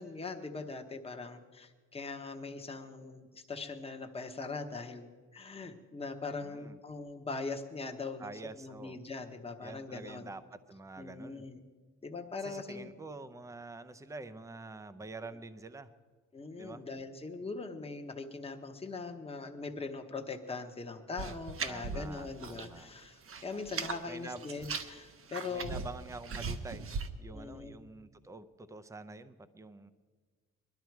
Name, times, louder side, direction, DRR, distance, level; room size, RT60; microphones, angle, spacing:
voice 1, 0.0-10.3 11.0-11.6 12.0-12.9 16.3-25.8 27.3-27.8, left 4 dB, 20° left, 4 dB, 1.0 m, -41 dB
voice 2, 6.4-6.8 8.2-9.0 9.6-10.4 10.7-11.5 12.4-15.9 16.6-16.8 21.7-22.9 24.1-24.4 25.5-26.9 27.2-29.9, right 3 dB, 10° right, 12 dB, 0.5 m, -46 dB
sound 1, 21.2-22.8 23.0-24.0 24.4-27.1, right 5 dB, 40° right, 0.9 m, -39 dB
21.0 x 12.0 x 4.6 m, 1.5 s
cardioid pair, 130°, 32 cm